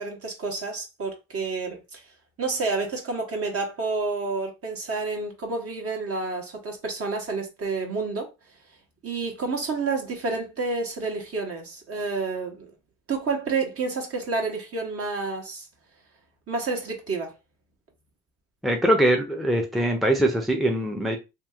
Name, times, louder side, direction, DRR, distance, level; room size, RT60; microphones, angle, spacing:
voice 1, 0.0-2.0 2.4-8.3 9.0-12.7 13.1-15.7 16.5-17.3, right 3 dB, 50° right, 1.1 m, -29 dB
voice 2, 18.6-21.2, right 1 dB, ahead, 0.6 m, -22 dB
2.9 x 2.8 x 2.3 m
cardioid pair, 90°, 30 cm